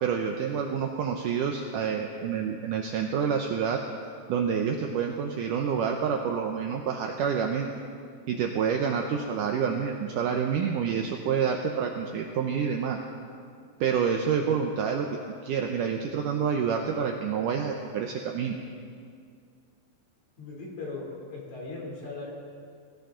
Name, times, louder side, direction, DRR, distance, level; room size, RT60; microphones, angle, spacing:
voice 1, 0.0-3.8 4.3-7.7 8.3-13.0 13.8-15.1 15.4-18.6, right 7 dB, 90° right, 3 dB, 1.8 m, -28 dB
voice 2, 20.4-22.3, left 3 dB, 45° left, -2 dB, 4.2 m, -38 dB
22.0 x 16.0 x 3.8 m, 2.2 s
omnidirectional pair, 4.8 m